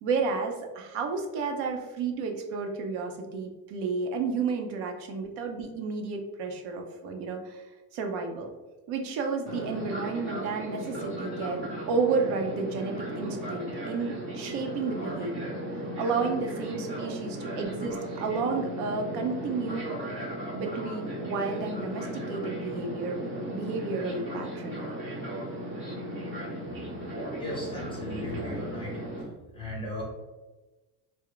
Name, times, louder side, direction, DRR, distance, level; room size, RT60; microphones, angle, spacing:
voice 1, 0.0-7.7 7.9-8.5 8.9-20.0 20.5-23.2 23.5-24.8, right 4 dB, 70° right, 3 dB, 0.8 m, -32 dB
Fixed-wing aircraft airplane, 9.5-29.2, right 1 dB, 30° right, 1.1 m, -36 dB
voice 2, 27.4-29.3 29.5-30.0, left 1 dB, 10° left, -4 dB, 0.8 m, -37 dB
3.3 x 2.1 x 3.8 m, 1.2 s
cardioid pair, 120°, 43 cm